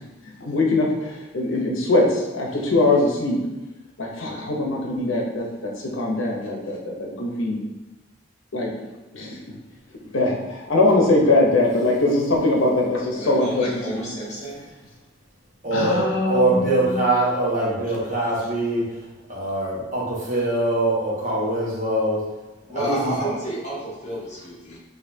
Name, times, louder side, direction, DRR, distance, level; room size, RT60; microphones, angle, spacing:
voice 1, 0.4-3.4 4.0-7.6 8.5-8.7 9.1-9.4 10.1-14.1 15.7-17.0, left 2 dB, 80° left, -1 dB, 0.8 m, -22 dB
voice 2, 13.1-14.6 22.7-24.8, right 1 dB, 35° left, -6 dB, 1.3 m, -31 dB
voice 3, 15.6-22.2 22.7-23.3, right 1 dB, 40° right, -6 dB, 1.2 m, -23 dB
6.4 x 2.7 x 2.7 m, 1.1 s
head